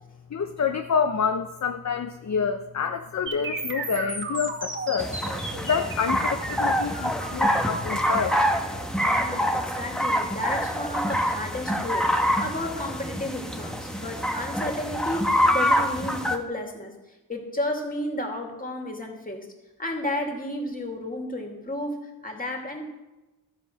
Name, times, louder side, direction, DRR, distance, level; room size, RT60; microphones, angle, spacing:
voice 1, 0.3-5.1 5.6-8.3, left 6 dB, 45° left, 6 dB, 0.8 m, -27 dB
sound 1, 3.3-11.2, right 2 dB, 30° right, 2.3 m, -36 dB
sound 2, 5.0-16.4, equal, ahead, 1.2 m, -26 dB
voice 2, 9.0-17.0 17.3-19.5 19.8-22.9, left 1 dB, 20° left, 2 dB, 2.6 m, -32 dB
13.0 x 7.7 x 6.3 m, 1.1 s
wide cardioid pair, 85°, 37 cm